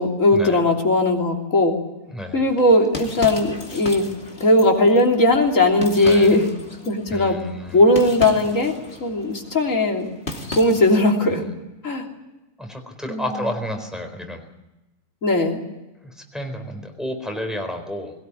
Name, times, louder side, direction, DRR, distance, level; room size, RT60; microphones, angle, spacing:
voice 1, 0.0-1.7 2.3-4.1 4.4-6.5 6.9-7.4 7.7-8.7 9.0-10.1 10.6-11.4 11.8-12.1 13.1-13.5 15.2-15.6, left 2 dB, 60° left, 1 dB, 3.6 m, -18 dB
voice 2, 2.1-2.4 6.0-6.4 7.1-7.8 12.6-14.4 16.0-18.1, left 1 dB, ahead, 4 dB, 4.1 m, -31 dB
sound 1, 2.5-11.1, left 2 dB, 40° left, 3.1 m, -36 dB
21.5 x 18.0 x 9.9 m, 1.0 s
omnidirectional pair, 1.6 m